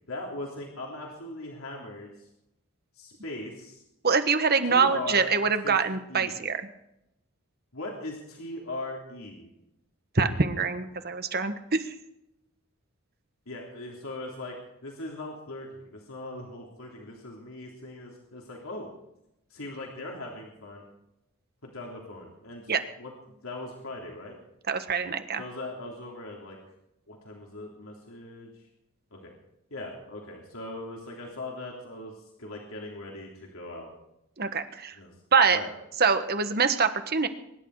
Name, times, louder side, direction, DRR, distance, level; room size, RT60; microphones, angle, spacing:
voice 1, 0.1-2.3 2.9-3.8 4.7-5.3 5.6-5.8 6.1-6.4 7.7-9.5 13.5-14.6 14.8-18.9 19.5-20.8 21.6-24.4 25.4-26.6 27.1-28.5 29.1-29.3 29.7-33.9 34.9-35.1 35.5-35.7, left 2 dB, 80° left, -1 dB, 3.4 m, -39 dB
voice 2, 4.0-6.6 10.1-11.8 22.7-22.8 24.7-25.4 34.4-34.9 35.3-35.6 36.0-37.3, right 5 dB, 50° right, 9 dB, 1.4 m, -24 dB
23.5 x 11.5 x 4.9 m, 0.85 s
head